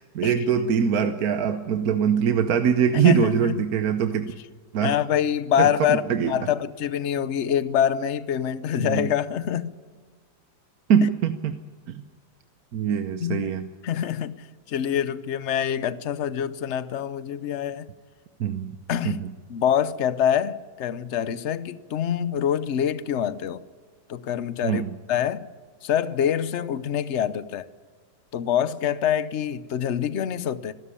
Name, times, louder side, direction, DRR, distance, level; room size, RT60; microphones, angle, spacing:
voice 1, 0.0-4.3 4.7-5.0 5.6-6.3 8.8-9.1 10.9-11.5 11.9-12.0 12.7-13.7 18.4-18.8 19.0-19.3 24.6-24.9, right 7 dB, 55° right, 8 dB, 1.2 m, -23 dB
voice 2, 2.9-3.6 4.8-9.7 13.2-17.9 18.9-19.2 19.5-23.6 24.1-24.8 25.1-25.5 25.8-27.7 28.3-30.7, left 9 dB, 55° left, 15 dB, 0.8 m, -25 dB
25.5 x 13.0 x 8.4 m, 1.5 s
omnidirectional pair, 2.1 m